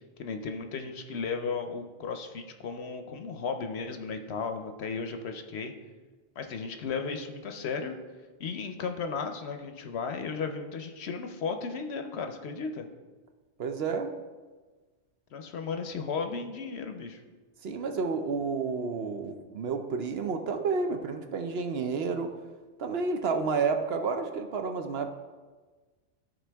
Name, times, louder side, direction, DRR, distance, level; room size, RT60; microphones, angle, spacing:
voice 1, 0.0-5.7 6.4-7.9 8.4-12.9 15.3-17.2, left 5 dB, 65° left, 6 dB, 0.9 m, -35 dB
voice 2, 13.6-14.1 17.6-22.3 22.8-25.1, right 4 dB, 60° right, 6 dB, 0.8 m, -30 dB
13.5 x 4.4 x 3.4 m, 1.3 s
omnidirectional pair, 1.3 m